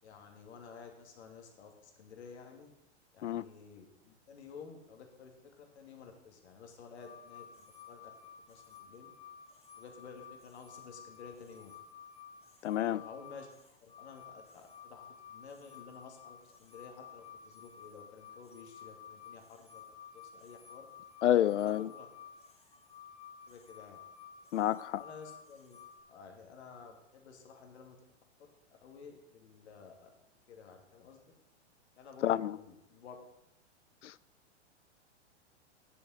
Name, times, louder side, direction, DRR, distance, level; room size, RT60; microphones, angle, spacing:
voice 1, 0.0-2.7 3.1-8.1 8.5-9.1 9.8-11.7 12.9-13.5 14.0-19.8 20.1-20.9 21.6-22.1 23.5-24.0 25.0-25.8 26.1-28.0 28.8-30.1 30.5-31.2 32.0-33.1, left 5 dB, 70° left, 2.4 m, -52 dB
sound 1, 7.0-26.0, left 7 dB, 20° left, 1.5 m, -53 dB
voice 2, 12.6-13.0 21.2-21.9 24.5-25.0 32.2-32.5 34.0-34.1, left 11 dB, 85° left, 0.5 m, -28 dB
7.6 x 7.1 x 7.1 m
hypercardioid pair, 115°, 35 cm